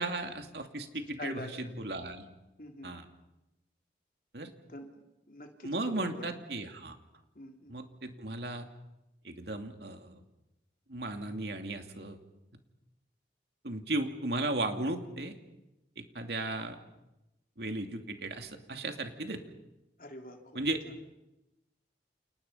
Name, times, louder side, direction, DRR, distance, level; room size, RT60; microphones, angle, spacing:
voice 1, 0.0-2.3 2.8-3.0 4.3-4.5 5.6-7.0 7.7-8.7 9.2-10.1 10.9-12.2 13.6-15.4 16.0-16.8 17.6-19.4 20.5-20.8, right 2 dB, 70° right, 5 dB, 2.6 m, -35 dB
voice 2, 1.2-1.7 2.6-2.9 4.7-6.4 7.4-7.7 20.0-20.4 20.7-20.8, left 1 dB, 50° left, 3 dB, 3.4 m, -45 dB
30.0 x 28.5 x 5.7 m, 0.95 s
head